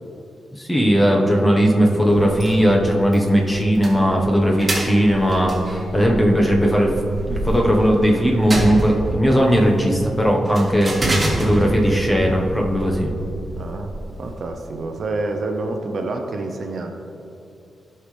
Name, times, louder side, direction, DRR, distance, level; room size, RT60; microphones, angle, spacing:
voice 1, 0.6-6.9 7.3-13.1, equal, 10° left, 0 dB, 1.2 m, -18 dB
sound 1, 2.1-14.5, right 1 dB, 20° right, 1.9 m, -29 dB
voice 2, 13.6-16.9, right 2 dB, 50° right, 4 dB, 0.8 m, -28 dB
16.5 x 5.7 x 3.4 m, 2.6 s
wide cardioid pair, 130°, 0 cm